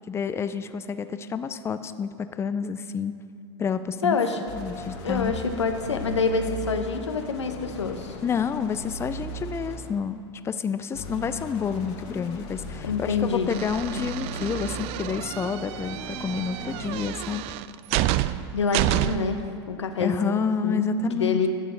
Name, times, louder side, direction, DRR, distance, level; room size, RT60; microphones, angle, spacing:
voice 1, 0.1-3.1 3.6-4.2 4.5-5.3 8.2-10.2 10.4-17.4 20.0-21.5, left 6 dB, 20° left, 11 dB, 0.4 m, -29 dB
voice 2, 4.0-4.4 5.0-8.1 12.8-13.5 18.5-19.4 19.7-21.5, left 5 dB, 90° left, 6 dB, 1.0 m, -26 dB
sound 1, 4.5-10.1 10.9-17.3, equal, 50° left, 1.8 m, -38 dB
sound 2, 13.5-19.4, right 15 dB, 45° right, 0.4 m, -29 dB
11.5 x 6.9 x 6.3 m, 2.4 s
hypercardioid pair, 95°, 14 cm